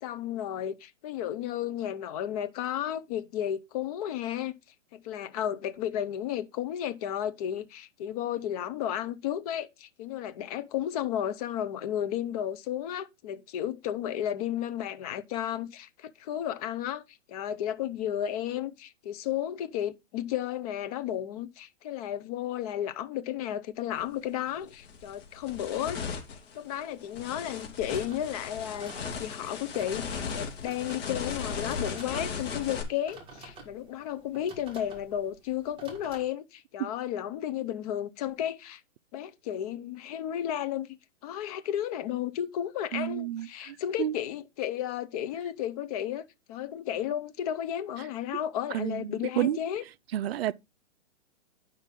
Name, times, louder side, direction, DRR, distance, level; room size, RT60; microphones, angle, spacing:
voice 1, 0.0-4.5 4.9-17.0 17.3-26.0 26.5-28.9 29.2-38.8 39.1-40.9 41.2-49.8, left 11 dB, 30° left, 0.7 m, -33 dB
sound 1, 24.0-24.1 24.6-32.8, left 6 dB, 50° left, 2.7 m, -37 dB
sound 2, 27.9-36.2, right 3 dB, 15° right, 1.9 m, -50 dB
voice 2, 42.9-44.1 48.7-49.6 50.1-50.5, right 12 dB, 55° right, 0.5 m, -30 dB
9.9 x 5.6 x 3.7 m
hypercardioid pair, 145°, 38 cm